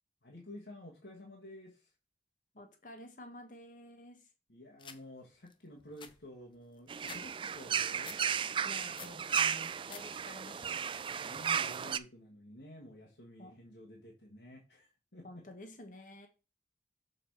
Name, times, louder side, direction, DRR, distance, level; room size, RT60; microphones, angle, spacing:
voice 1, 0.2-1.9 4.5-8.2 11.2-15.4, left 1 dB, 75° left, 1.7 m, -51 dB
voice 2, 2.5-4.2 8.6-10.8 13.4-13.6 15.2-16.3, left 1 dB, 45° left, 1.7 m, -51 dB
sound 1, 4.8-5.0 5.5-5.6 5.8-7.2 7.6-8.2 8.6-9.2 9.6-10.0 10.4-10.9, left 6 dB, 25° left, 0.7 m, -50 dB
sound 2, 6.9-12.0, right 7 dB, 30° right, 0.3 m, -34 dB
6.9 x 4.8 x 4.8 m
head